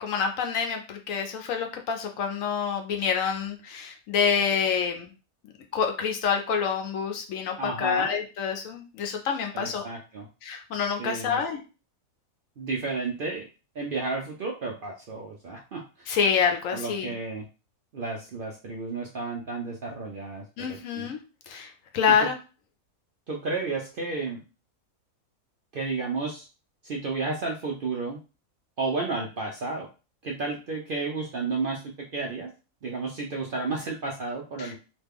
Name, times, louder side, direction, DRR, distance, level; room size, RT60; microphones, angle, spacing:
voice 1, 0.0-5.1 5.7-9.8 10.4-11.6 16.1-17.1 20.6-21.2 21.5-22.4 34.6-34.8, left 6 dB, 70° left, 4 dB, 1.0 m, -27 dB
voice 2, 7.6-8.1 9.5-10.3 11.0-11.4 12.6-13.4 13.7-16.1 16.7-17.4 17.9-21.1 22.2-22.3 23.3-24.4 25.7-26.5 26.8-28.2 28.8-29.9 30.2-32.5 32.8-34.8, right 3 dB, 65° right, 0 dB, 0.5 m, -32 dB
3.0 x 2.2 x 3.4 m, 0.32 s
omnidirectional pair, 1.5 m